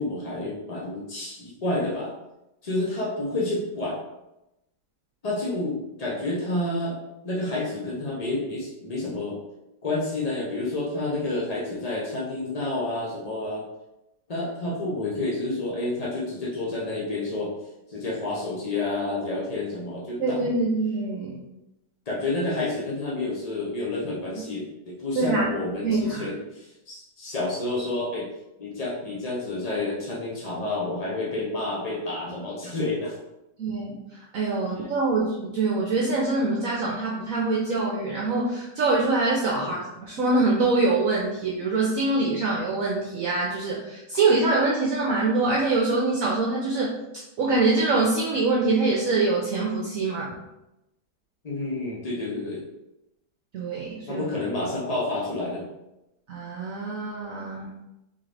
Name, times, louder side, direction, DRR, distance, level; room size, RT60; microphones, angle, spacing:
voice 1, 0.0-2.1 2.6-4.0 5.2-7.0 7.2-9.4 9.8-13.7 14.3-17.5 17.9-20.5 22.1-28.3 28.6-33.1 39.5-39.8 51.4-52.6 54.1-55.7, left 2 dB, 50° left, -5 dB, 0.4 m, -29 dB
voice 2, 20.2-21.4 25.2-25.5 25.8-26.2 33.6-33.9 34.3-46.9 47.4-50.3 53.5-54.2 56.3-57.7, right 3 dB, 60° right, -3 dB, 1.0 m, -24 dB
3.8 x 3.7 x 3.3 m, 0.91 s
omnidirectional pair, 1.9 m